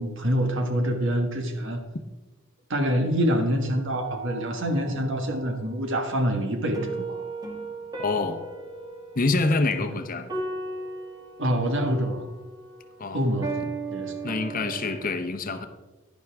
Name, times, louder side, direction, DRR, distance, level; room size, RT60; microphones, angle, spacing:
voice 1, 0.0-1.8 2.7-7.2 9.8-9.9 11.4-12.3 13.1-13.6 13.9-14.1, equal, 65° right, 5 dB, 1.5 m, -26 dB
sound 1, 4.0-15.1, right 3 dB, 20° right, 1.4 m, -37 dB
voice 2, 8.0-8.4 9.1-10.3 13.0-13.3 14.2-15.7, left 3 dB, 45° left, 8 dB, 0.8 m, -26 dB
11.0 x 10.5 x 3.5 m, 1.1 s
head